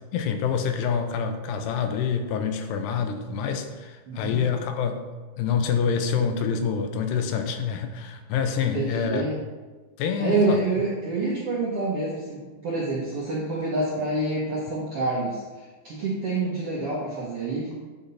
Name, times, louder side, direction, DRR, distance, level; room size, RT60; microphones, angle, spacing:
voice 1, 0.1-5.0 5.4-9.2 10.0-10.8, left 6 dB, 85° left, 7 dB, 2.8 m, -26 dB
voice 2, 4.1-4.5 8.6-9.3 10.2-15.4 15.8-17.7, right 3 dB, 70° right, -6 dB, 1.4 m, -27 dB
9.1 x 6.0 x 4.2 m, 1.3 s
omnidirectional pair, 4.7 m